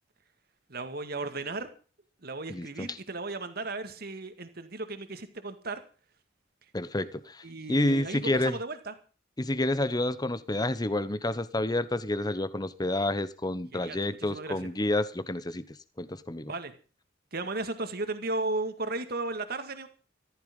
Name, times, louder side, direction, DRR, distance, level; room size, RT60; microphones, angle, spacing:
voice 1, 0.7-1.7 2.2-5.8 7.4-8.9 13.7-14.7 16.5-16.7 17.3-19.9, right 2 dB, 55° right, 2.2 m, -35 dB
voice 2, 2.5-2.9 6.7-7.4 7.7-8.5 9.4-15.6 16.0-16.5, left 1 dB, 20° left, 1.0 m, -29 dB
14.5 x 14.5 x 5.4 m
head